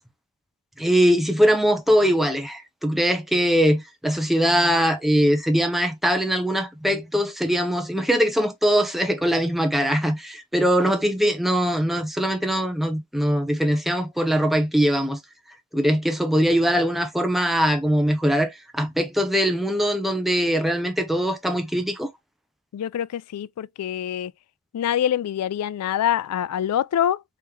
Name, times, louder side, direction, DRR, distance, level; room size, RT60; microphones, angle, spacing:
voice 1, 0.8-15.2 15.7-22.1, equal, ahead, 0.5 m, -21 dB
voice 2, 22.7-24.3 24.7-27.2, left 10 dB, 80° left, 0.3 m, -25 dB
3.3 x 2.9 x 3.5 m
head